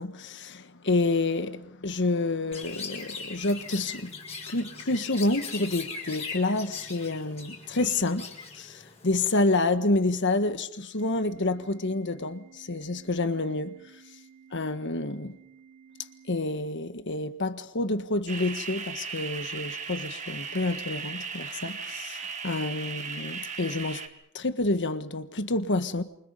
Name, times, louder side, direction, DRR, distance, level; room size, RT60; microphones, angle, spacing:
voice 1, 0.0-4.1 4.5-8.3 8.5-13.7 14.5-15.4 16.3-24.0 24.3-26.0, left 2 dB, 55° left, 1.5 m, -28 dB
Chirp tweet, 2.5-9.4, left 5 dB, 30° left, 5.3 m, -40 dB
Organ, 11.0-17.0, right 7 dB, 75° right, 5.3 m, -55 dB
sound 1, 18.3-24.1, right 5 dB, 35° right, 2.0 m, -37 dB
28.0 x 25.5 x 5.3 m
head